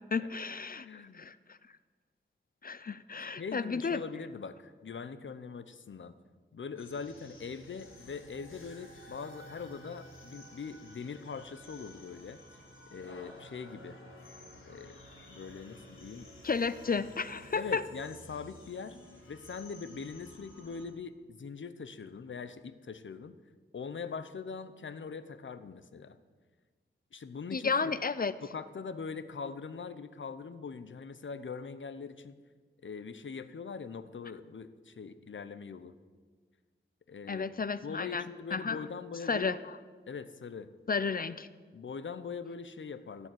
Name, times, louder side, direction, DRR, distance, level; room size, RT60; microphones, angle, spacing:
voice 1, 0.1-1.6 2.6-4.0 16.4-17.8 27.5-28.3 37.3-38.2 38.5-38.8 39.3-39.6 40.9-41.5, left 5 dB, 45° left, 15 dB, 0.5 m, -32 dB
voice 2, 0.8-1.3 3.2-6.2 6.5-12.6 12.9-14.0 14.7-15.0 15.3-16.3 17.5-19.0 19.3-23.4 23.7-26.2 27.1-28.0 28.4-32.3 32.8-35.9 37.1-37.5 37.8-39.5 40.1-40.7 41.7-43.3, left 5 dB, 65° left, 12 dB, 0.8 m, -42 dB
sound 1, 6.8-20.8, left 1 dB, 85° left, 3.9 m, -53 dB
17.0 x 7.1 x 9.2 m, 1.5 s
wide cardioid pair, 100°, 21 cm